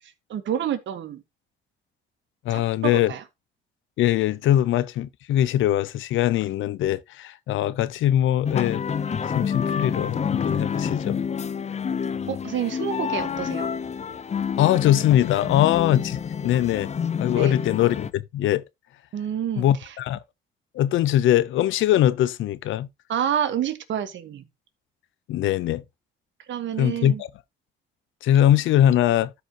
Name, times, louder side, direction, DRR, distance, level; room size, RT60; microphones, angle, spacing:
voice 1, 0.3-1.2 3.1-3.2 12.3-13.7 17.4-17.5 19.1-19.6 23.1-24.4 26.5-27.2, right 9 dB, 70° right, 1.4 m, -28 dB
voice 2, 2.4-3.1 4.0-8.8 9.2-11.2 14.6-16.9 17.2-18.6 19.6-20.2 20.7-22.9 25.3-25.8 26.8-27.3 28.2-29.3, left 12 dB, 80° left, 0.6 m, -22 dB
sound 1, 8.4-18.1, left 7 dB, 35° left, 0.6 m, -28 dB
13.0 x 5.2 x 2.9 m
cardioid pair, 90°, 20 cm